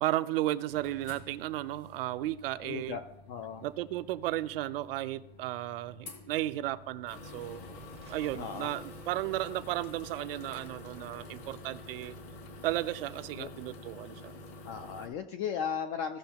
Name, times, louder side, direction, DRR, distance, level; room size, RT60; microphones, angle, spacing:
voice 1, 0.0-3.0 3.6-7.6 8.1-12.1 12.6-14.3, right 15 dB, 65° right, 0.6 m, -34 dB
sound 1, 0.7-15.1, left 2 dB, 60° left, 2.5 m, -48 dB
voice 2, 2.6-3.6 8.3-8.7 13.3-13.5 14.6-16.2, left 7 dB, 30° left, 0.4 m, -36 dB
sound 2, 7.0-13.5, right 1 dB, 75° left, 3.0 m, -60 dB
sound 3, 7.6-10.2 10.7-11.8, right 6 dB, 20° right, 0.6 m, -57 dB
16.5 x 6.3 x 2.9 m
supercardioid pair, 165°, 31 cm